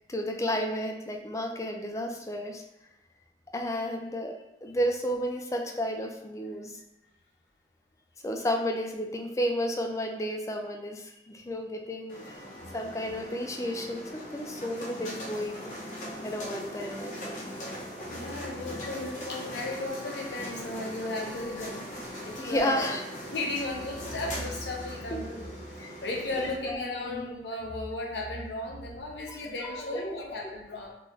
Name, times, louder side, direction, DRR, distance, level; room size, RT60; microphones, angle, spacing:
voice 1, 0.1-2.6 3.5-4.3 4.6-6.7 8.2-12.2 12.7-15.7 16.2-17.3 22.4-23.0 25.1-25.2 25.8-25.9 26.4-27.3 29.3-30.0, equal, 15° left, 3 dB, 0.3 m, -32 dB
sound 1, 12.1-26.5, equal, 45° left, 0.7 m, -40 dB
voice 2, 18.1-21.9 22.2-22.9 23.3-25.6 26.0-30.9, left 2 dB, 75° left, -2 dB, 0.8 m, -35 dB
3.8 x 2.5 x 3.2 m, 0.86 s
head